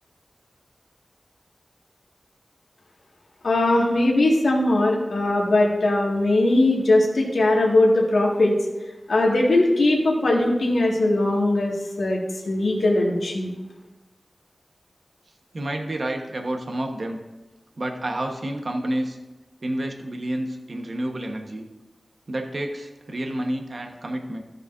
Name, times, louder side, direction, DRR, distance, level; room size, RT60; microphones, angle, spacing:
voice 1, 3.4-8.5 9.1-12.2 12.5-13.5, left 2 dB, 85° left, -3 dB, 1.8 m, -20 dB
voice 2, 15.5-17.2 17.8-19.2 19.6-21.7 22.3-24.4, right 1 dB, 60° right, 3 dB, 1.1 m, -29 dB
14.5 x 6.6 x 2.6 m, 1.2 s
wide cardioid pair, 65°, 0 cm